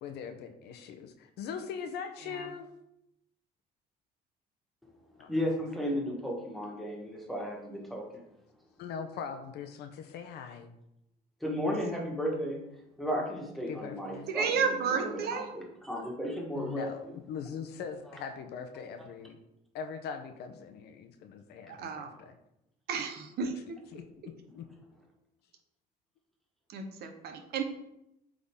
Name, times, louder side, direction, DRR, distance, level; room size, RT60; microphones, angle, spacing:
voice 1, 0.0-2.7 5.2-5.4 8.8-10.8 13.7-14.3 16.5-17.0 17.3-19.4 19.7-22.4 23.9-24.7, left 6 dB, 80° left, 8 dB, 0.8 m, -41 dB
voice 2, 5.3-8.2 11.4-12.6 13.0-16.9, equal, ahead, -1 dB, 1.8 m, -34 dB
voice 3, 14.3-15.5 21.7-22.1 22.9-23.5 26.7-27.6, right 6 dB, 70° right, 6 dB, 1.1 m, -31 dB
8.1 x 3.8 x 3.7 m, 0.81 s
cardioid pair, 110°, 17 cm